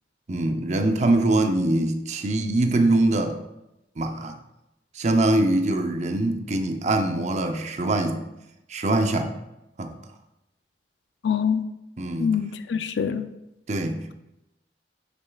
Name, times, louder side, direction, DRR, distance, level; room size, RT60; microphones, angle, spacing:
voice 1, 0.3-3.4 4.0-4.3 4.9-8.2 8.7-9.3 9.8-9.9 12.0-12.4 13.7-14.1, right 2 dB, 40° right, 5 dB, 0.6 m, -23 dB
voice 2, 11.2-11.7 12.2-13.3, left 7 dB, 85° left, 11 dB, 0.4 m, -25 dB
9.0 x 6.5 x 2.3 m, 0.91 s
head